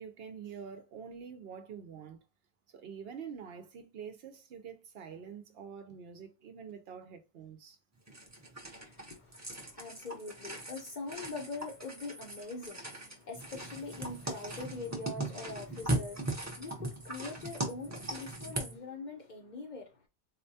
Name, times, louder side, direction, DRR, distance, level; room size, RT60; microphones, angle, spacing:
voice 1, 0.0-2.2 2.7-7.8, right 7 dB, 65° right, 0.8 m, -46 dB
sound 1, 8.1-18.8, right 2 dB, 15° right, 0.7 m, -39 dB
voice 2, 8.7-20.0, left 3 dB, 50° left, 0.7 m, -43 dB
4.1 x 2.2 x 2.7 m
omnidirectional pair, 1.2 m